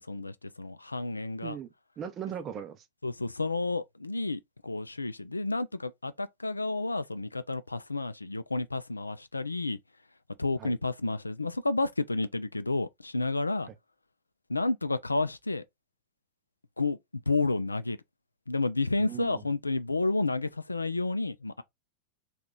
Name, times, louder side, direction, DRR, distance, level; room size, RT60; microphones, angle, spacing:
voice 1, 0.0-1.6 3.0-9.8 10.4-13.7 14.5-15.6 16.8-17.0 17.3-18.0 18.5-21.6, left 3 dB, 80° left, 0.3 m, -30 dB
voice 2, 1.4-2.8 10.6-10.7 13.7-13.8 19.0-19.5, right 8 dB, 30° right, 0.6 m, -39 dB
2.8 x 2.4 x 3.7 m
figure-of-eight pair, 90°, 0 cm